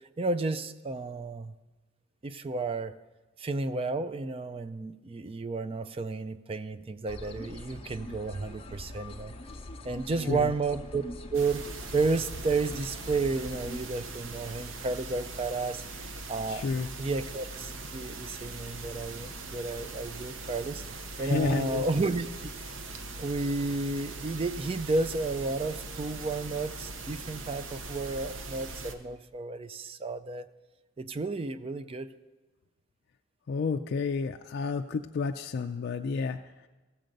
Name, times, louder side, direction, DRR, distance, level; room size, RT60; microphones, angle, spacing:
voice 1, 0.2-1.5 2.2-3.0 3.4-9.3 9.8-11.0 11.3-11.6 11.9-15.8 16.3-16.7 17.0-20.8 21.2-22.3 23.2-30.5 31.0-32.1, right 3 dB, 30° right, 13 dB, 0.4 m, -32 dB
sound 1, 7.1-13.8, left 1 dB, 30° left, 0.7 m, -43 dB
sound 2, 11.3-29.0, right 2 dB, 70° right, 0.8 m, -41 dB
voice 2, 16.5-16.9 21.2-21.9 33.5-36.4, left 5 dB, 55° left, 5 dB, 0.3 m, -31 dB
14.5 x 7.7 x 5.2 m, 1.2 s
head